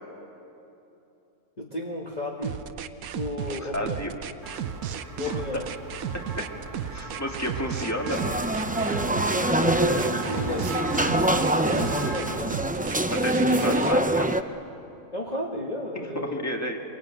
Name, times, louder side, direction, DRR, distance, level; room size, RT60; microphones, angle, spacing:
voice 1, 1.6-2.6 3.1-4.2 5.2-5.8 9.1-10.9 11.5-12.6 15.1-16.4, left 1 dB, 30° left, -1 dB, 1.6 m, -33 dB
sound 1, 2.4-14.0, right 9 dB, 75° right, 1.2 m, -34 dB
voice 2, 3.6-4.1 5.3-5.4 6.1-6.5 6.9-8.2 13.1-14.4 16.0-16.8, left 1 dB, 10° left, 2 dB, 2.0 m, -32 dB
sound 2, 4.4-12.4, right 2 dB, 60° right, 2.1 m, -37 dB
sound 3, 8.1-14.4, right 1 dB, 10° right, 0.3 m, -24 dB
24.0 x 23.0 x 9.2 m, 2.9 s
omnidirectional pair, 1.5 m